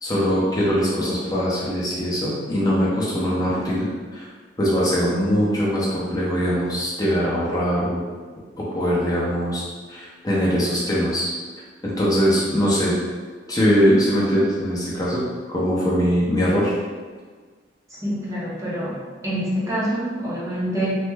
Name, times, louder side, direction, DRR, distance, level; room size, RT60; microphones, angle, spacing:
voice 1, 0.0-4.3 4.6-8.1 8.7-11.3 11.8-12.9 13.5-15.2 15.5-16.7, equal, 20° left, -6 dB, 0.6 m, -21 dB
voice 2, 18.0-19.0 19.2-20.9, right 1 dB, 20° right, -7 dB, 0.7 m, -26 dB
3.1 x 2.1 x 3.4 m, 1.5 s
head